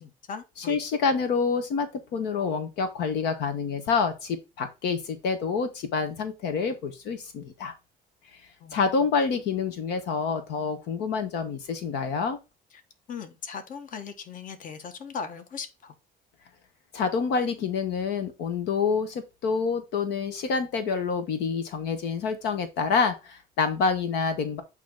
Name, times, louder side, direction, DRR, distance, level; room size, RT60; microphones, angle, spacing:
voice 1, 0.0-0.8 8.6-9.0 13.1-15.9, left 6 dB, 50° left, 1.2 m, -39 dB
voice 2, 0.6-7.7 8.7-12.4 16.9-24.6, left 5 dB, 85° left, 1.1 m, -27 dB
8.4 x 3.0 x 3.7 m
cardioid pair, 110°, 17 cm